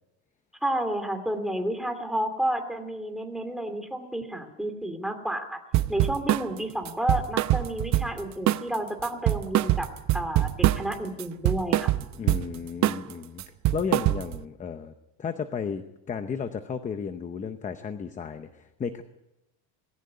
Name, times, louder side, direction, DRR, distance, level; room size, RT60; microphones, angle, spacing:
voice 1, 0.6-5.6 5.9-9.9 10.1-11.9, right 1 dB, ahead, 5 dB, 2.5 m, -31 dB
sound 1, 5.7-6.5 6.9-8.2 8.5-8.8 9.0-10.9 11.2-12.5 12.8-13.1 13.4-14.4, right 14 dB, 45° right, 0.8 m, -24 dB
voice 2, 12.2-13.4 13.7-14.9 15.2-19.0, left 6 dB, 20° left, 9 dB, 0.8 m, -33 dB
19.5 x 17.0 x 9.6 m, 0.90 s
cardioid pair, 165°, 41 cm